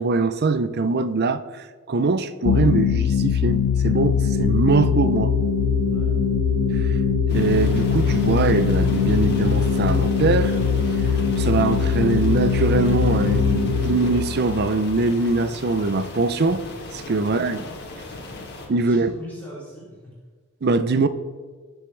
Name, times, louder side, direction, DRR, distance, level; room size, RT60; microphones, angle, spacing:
voice 1, 0.0-5.3 6.7-7.0 7.3-10.6 11.4-16.6 16.9-17.6 18.7-19.1 20.6-21.1, right 3 dB, 45° right, 0.5 m, -22 dB
sound 1, 2.4-15.7, left 8 dB, 80° left, 0.4 m, -22 dB
sound 2, 4.2-14.2, right 3 dB, 85° right, 1.9 m, -30 dB
voice 2, 5.8-6.1 18.0-18.4 18.8-20.1, equal, 10° left, 3.4 m, -42 dB
sound 3, 7.3-18.7, left 2 dB, 50° left, 2.1 m, -37 dB
20.0 x 7.0 x 3.3 m
head